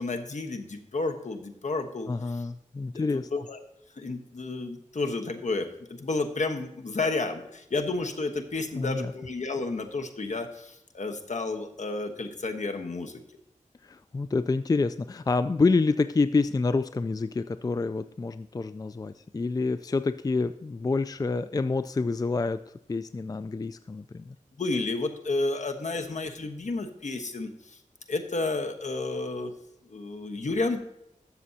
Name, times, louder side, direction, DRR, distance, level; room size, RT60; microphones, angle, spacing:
voice 1, 0.0-2.5 2.9-3.6 4.0-13.2 24.6-27.8 28.1-29.5 29.8-30.8, left 3 dB, 60° left, 5 dB, 1.2 m, -31 dB
voice 2, 2.1-3.3 8.7-9.1 13.8-22.6 22.9-24.4, left 3 dB, 30° left, 12 dB, 0.3 m, -27 dB
12.5 x 7.0 x 2.8 m, 0.83 s
wide cardioid pair, 60°, 14 cm